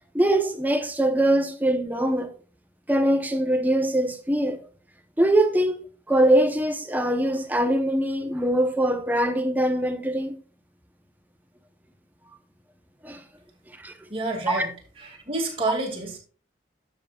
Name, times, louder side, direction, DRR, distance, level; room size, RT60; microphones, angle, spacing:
voice 1, 0.1-2.3 2.9-4.6 5.2-5.8 6.1-10.4 13.0-13.2 13.8-13.9 14.5-14.7, right 1 dB, 10° right, 0.7 m, -22 dB
voice 2, 14.1-14.7 15.0-16.2, right 2 dB, 30° right, 2.1 m, -29 dB
12.0 x 7.0 x 2.3 m
head